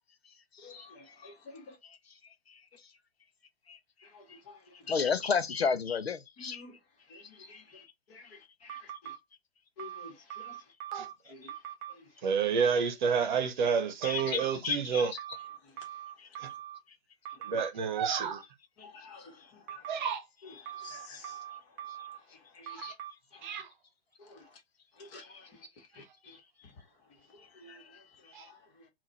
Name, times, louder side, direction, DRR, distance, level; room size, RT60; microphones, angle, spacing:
voice 1, 0.6-1.7 4.0-4.9 6.4-6.8 7.1-9.1 9.8-10.6 11.3-11.5 11.9-12.3 15.3-15.4 15.6-15.9 16.3-16.5 17.3-17.6 18.8-20.0 20.4-21.5 22.3-22.9 23.3-23.6 24.2-24.6 24.9-26.4 26.8-26.9 27.3-28.9, left 3 dB, 30° left, 1.7 m, -52 dB
voice 2, 4.9-6.6 7.7-7.8 14.0-15.2 16.2-16.3 20.6-20.7, left 5 dB, 75° left, 0.7 m, -31 dB
sound 1, 8.7-9.2 9.8-11.1 11.5-11.9 14.0-14.6 15.2-16.8 17.2-17.7 19.7-20.1 20.7-22.2 22.7-23.1, right 10 dB, 15° right, 0.4 m, -42 dB
voice 3, 12.2-15.1 17.4-18.4 19.9-20.2 22.8-22.9 23.4-23.7 28.3-28.4, right 6 dB, 45° right, 0.9 m, -29 dB
3.7 x 2.6 x 4.1 m
figure-of-eight pair, 115°, 32 cm